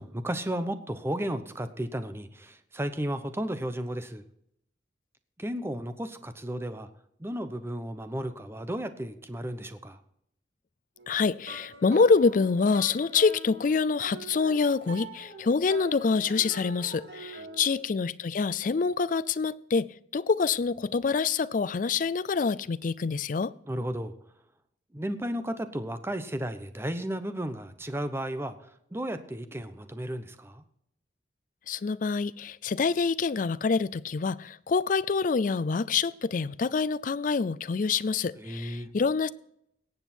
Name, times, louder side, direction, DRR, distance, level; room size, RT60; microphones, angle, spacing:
voice 1, 0.0-4.2 5.4-6.9 7.2-10.0 23.7-24.1 24.9-28.6 28.9-30.6 38.4-38.9, right 1 dB, 15° right, 0.8 m, -34 dB
sound 1, 11.0-17.7, right 2 dB, 75° right, 2.4 m, -44 dB
voice 2, 11.1-23.5 31.7-39.3, left 5 dB, 50° left, 0.4 m, -26 dB
18.0 x 8.1 x 4.4 m
head